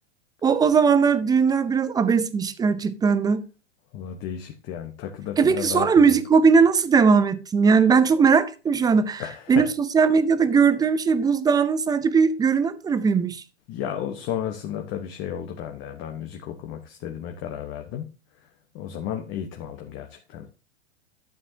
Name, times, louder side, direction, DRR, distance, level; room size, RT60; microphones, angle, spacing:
voice 1, 0.4-3.4 5.4-9.2 9.5-13.4, right 5 dB, 10° right, 0.6 m, -19 dB
voice 2, 3.9-6.2 9.2-9.7 13.7-18.1 18.7-20.5, left 9 dB, 35° left, 1.2 m, -33 dB
12.0 x 7.4 x 2.8 m
hypercardioid pair, 120°, 35 cm